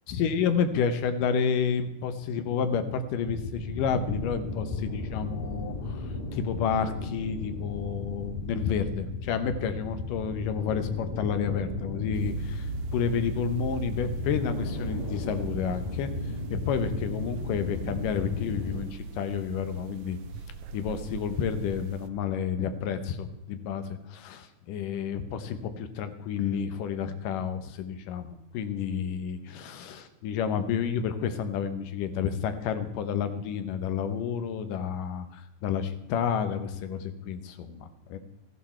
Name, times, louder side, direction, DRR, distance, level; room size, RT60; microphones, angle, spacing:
voice 1, 0.1-6.0 6.3-16.1 16.5-20.2 20.7-38.2, left 7 dB, 85° left, 10 dB, 2.6 m, -30 dB
sound 1, 3.3-18.8, left 2 dB, 65° left, 4.5 m, -36 dB
sound 2, 12.1-22.1, right 4 dB, 90° right, 1.3 m, -38 dB
15.0 x 11.0 x 4.4 m, 0.92 s
omnidirectional pair, 3.7 m